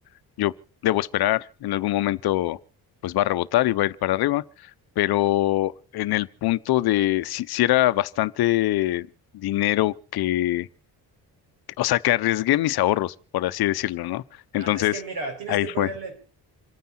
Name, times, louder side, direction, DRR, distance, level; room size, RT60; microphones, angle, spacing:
voice 1, 0.8-2.6 3.0-4.4 5.0-9.1 9.3-10.7 11.8-14.2 14.5-15.0 15.5-15.9, left 15 dB, 70° left, 0.7 m, -23 dB
voice 2, 14.6-16.2, right 3 dB, 65° right, 5.5 m, -34 dB
27.5 x 9.4 x 4.3 m
cardioid pair, 175°, 39 cm